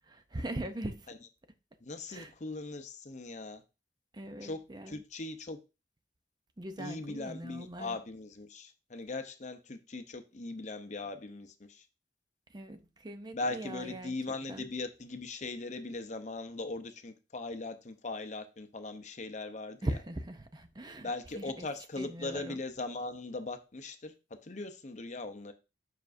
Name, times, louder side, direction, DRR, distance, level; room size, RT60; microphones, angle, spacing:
voice 1, 0.1-1.1 2.1-2.3 4.1-5.0 6.6-8.0 12.5-14.1 14.5-14.7 19.8-21.7 22.0-22.6, right 1 dB, 25° right, 0.6 m, -40 dB
voice 2, 1.8-3.6 4.4-4.6 4.9-5.6 6.8-11.8 13.3-19.9 21.0-24.1 24.4-25.5, left 2 dB, 45° left, 0.7 m, -39 dB
7.2 x 5.8 x 2.6 m
head